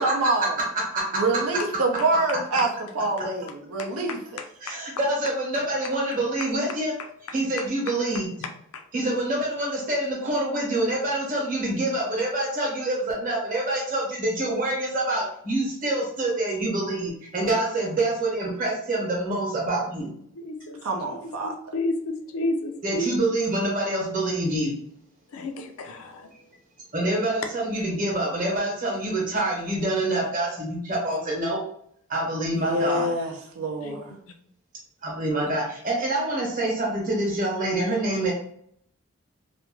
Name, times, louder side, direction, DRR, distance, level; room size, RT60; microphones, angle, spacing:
voice 1, 0.0-0.6 1.1-2.7 2.9-4.2 20.8-21.5 32.6-34.1, right 2 dB, 75° right, 1 dB, 0.5 m, -26 dB
voice 2, 0.7-1.2 4.6-6.9 7.3-8.3 8.9-20.1 22.8-24.7 26.9-31.6 32.1-33.1 35.0-38.3, right 1 dB, 35° right, -2 dB, 0.9 m, -26 dB
voice 3, 3.8-4.2 4.7-4.8 8.7-8.8 20.4-20.8 21.1-23.1 25.3-26.3 33.8-34.2, left 2 dB, 70° left, 6 dB, 0.4 m, -32 dB
2.5 x 2.1 x 3.0 m, 0.66 s
head